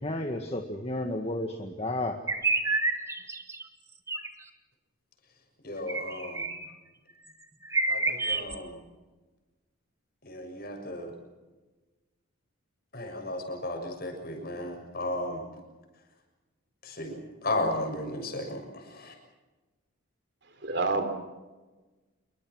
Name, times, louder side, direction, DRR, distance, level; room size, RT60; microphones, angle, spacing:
voice 1, 0.0-2.2, left 1 dB, 30° left, 4 dB, 1.7 m, -32 dB
sound 1, 2.3-3.6 4.1-4.3 5.9-6.7 7.3-7.4 7.6-8.6, right 3 dB, 15° right, 1.9 m, -29 dB
voice 2, 5.6-6.4 7.9-8.8 10.2-11.1 12.9-15.4 16.8-19.1, left 1 dB, 45° left, 3 dB, 6.8 m, -34 dB
voice 3, 20.4-21.0, right 3 dB, 55° right, 8 dB, 3.7 m, -28 dB
28.0 x 23.0 x 6.3 m, 1.2 s
head